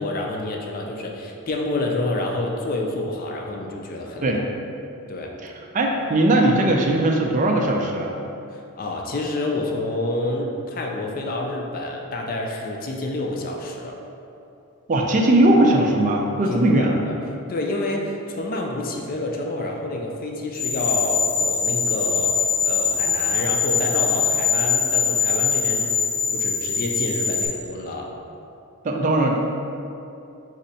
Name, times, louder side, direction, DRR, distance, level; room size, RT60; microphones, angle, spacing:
voice 1, 0.0-4.4 5.1-5.3 8.5-14.0 16.5-17.2 17.5-25.9 26.3-28.1, left 2 dB, 40° left, 1 dB, 0.4 m, -28 dB
voice 2, 5.4-8.1 14.9-16.9 28.8-29.4, right 1 dB, 35° right, 1 dB, 0.3 m, -19 dB
sound 1, 20.5-27.5, left 6 dB, 65° left, 0.7 m, -22 dB
4.1 x 2.7 x 4.0 m, 2.7 s
head